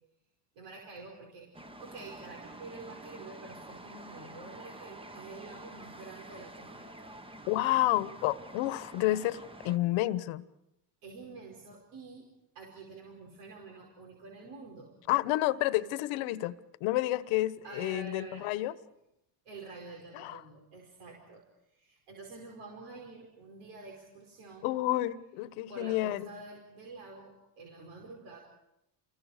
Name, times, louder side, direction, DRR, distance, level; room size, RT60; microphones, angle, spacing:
voice 1, 0.6-1.5 1.8-7.1 11.0-12.3 12.6-14.9 17.6-18.5 19.5-21.4 21.7-24.7 25.7-28.4, right 3 dB, 75° right, 5.3 m, -48 dB
sound 1, 1.5-9.8, right 1 dB, 10° right, 1.1 m, -48 dB
voice 2, 7.5-10.4 15.1-18.7 20.1-20.4 24.6-26.3, left 16 dB, 75° left, 1.3 m, -30 dB
29.5 x 22.5 x 5.1 m
cardioid pair, 115°, 50 cm